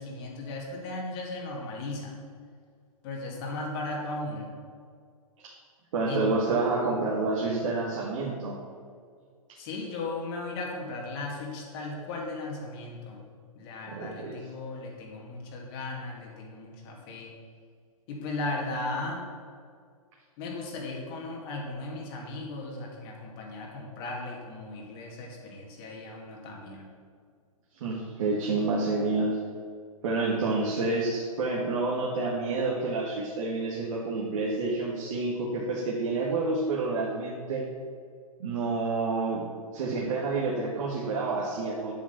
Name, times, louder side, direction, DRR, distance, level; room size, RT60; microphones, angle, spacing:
voice 1, 0.0-2.2 3.0-4.5 6.1-6.2 9.6-13.2 13.6-17.3 18.1-19.2 20.4-26.9, left 2 dB, 40° left, -1 dB, 2.4 m, -36 dB
voice 2, 5.9-8.6 13.9-14.3 27.8-29.4 30.0-37.6 38.4-39.5 39.7-41.9, right 3 dB, 55° right, -4 dB, 1.8 m, -29 dB
8.6 x 6.1 x 7.4 m, 2.1 s
hypercardioid pair, 125°, 19 cm